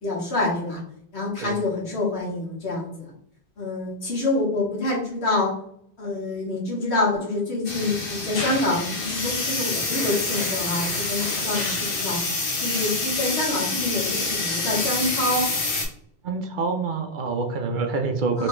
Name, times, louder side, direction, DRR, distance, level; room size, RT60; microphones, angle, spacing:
voice 1, 0.0-0.8 1.1-3.1 3.6-5.5 6.0-12.2 12.6-15.5 18.4-18.5, left 2 dB, 80° left, -4 dB, 1.7 m, -26 dB
sound 1, 7.7-15.9, left 3 dB, 60° left, 1.1 m, -27 dB
voice 2, 16.2-18.5, right 4 dB, 60° right, 5 dB, 0.6 m, -26 dB
3.3 x 3.0 x 2.9 m, 0.68 s
omnidirectional pair, 1.1 m